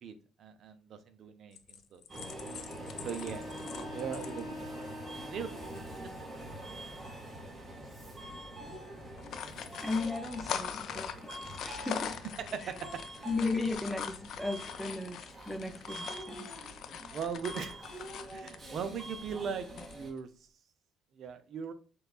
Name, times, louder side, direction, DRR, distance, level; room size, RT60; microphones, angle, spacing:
voice 1, 0.0-2.0 3.0-4.9 5.3-5.6 6.0-6.3 12.4-13.3 16.9-18.0 18.3-20.5 21.1-21.7, right 6 dB, 50° right, 10 dB, 0.5 m, -40 dB
sound 1, 1.6-4.4 4.8-4.9 5.2-5.4 5.7-5.8 6.8-7.2 7.7-7.9 8.2-8.4 9.0-18.6 19.7-20.2, left 8 dB, 55° left, 0.4 m, -42 dB
Wind instrument woodwind instrument, 2.1-6.4, left 2 dB, 80° left, 0.7 m, -46 dB
Subway metro underground, 2.1-20.1, right 1 dB, 20° right, 1.2 m, -45 dB
voice 2, 9.8-11.3 11.6-12.2 13.2-16.5, left 3 dB, 5° left, 4 dB, 0.6 m, -35 dB
6.3 x 2.3 x 2.4 m, 0.39 s
cardioid pair, 145°, 0 cm